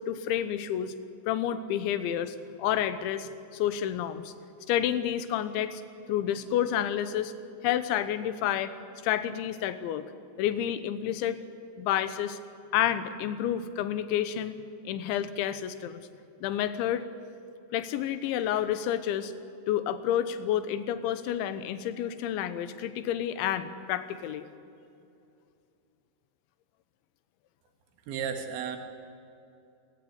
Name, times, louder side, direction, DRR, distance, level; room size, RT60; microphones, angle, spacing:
voice 1, 0.1-0.9 1.3-4.3 4.7-5.8 6.1-7.3 7.6-8.7 9.0-10.1 10.4-11.4 11.8-12.4 12.7-14.5 14.9-16.0 16.4-17.0 17.7-19.3 19.7-24.4, left 10 dB, 85° left, 12 dB, 3.4 m, -29 dB
voice 2, 28.1-28.8, right 7 dB, 80° right, 6 dB, 4.1 m, -33 dB
27.5 x 15.0 x 9.5 m, 2.6 s
omnidirectional pair, 5.2 m